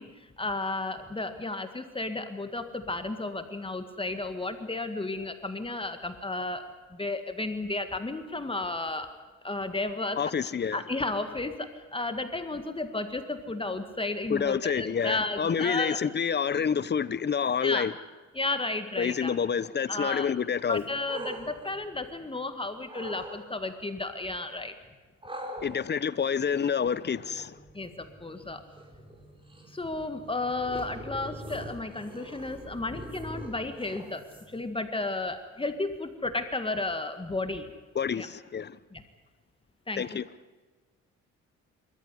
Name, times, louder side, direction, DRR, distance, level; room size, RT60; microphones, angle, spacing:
voice 1, 0.0-6.6 6.9-9.1 9.4-10.3 10.7-16.0 17.6-17.9 18.3-19.3 19.9-20.3 20.7-24.7 27.7-28.6 29.7-37.7 38.1-38.3 38.9-39.0 39.9-40.0, left 2 dB, 15° left, 1.9 m, -33 dB
voice 2, 10.2-10.8 14.3-17.9 19.0-20.9 25.6-27.6 37.9-38.8 40.0-40.2, left 7 dB, 35° left, 0.8 m, -28 dB
sound 1, 20.7-22.4 22.8-23.4 25.2-34.7, right 1 dB, 15° right, 4.5 m, -44 dB
26.5 x 14.0 x 9.9 m
cardioid pair, 90°, 30 cm